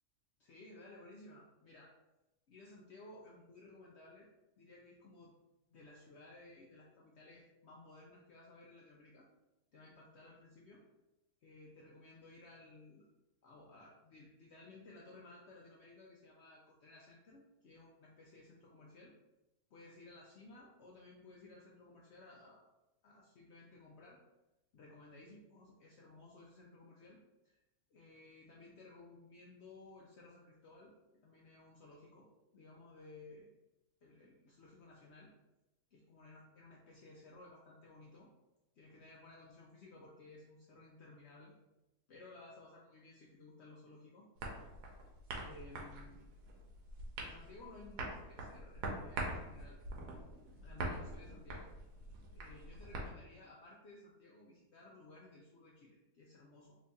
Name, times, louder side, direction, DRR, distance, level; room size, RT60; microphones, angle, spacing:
voice 1, 0.4-1.9 2.5-4.3 4.6-5.3 5.7-9.3 9.7-10.8 11.4-13.1 13.4-19.1 19.7-22.6 23.0-24.2 24.7-27.2 27.4-27.6 27.9-30.9 31.2-32.3 32.5-33.6 34.0-35.3 35.9-38.3 38.8-41.5 42.1-44.3 45.4-46.2 47.2-49.8 50.6-51.7 52.3-56.8, left 2 dB, 75° left, -3 dB, 0.6 m, -57 dB
sound 1, 44.4-53.1, right 2 dB, 80° right, 1.2 m, -44 dB
3.0 x 2.7 x 3.4 m, 0.96 s
omnidirectional pair, 1.7 m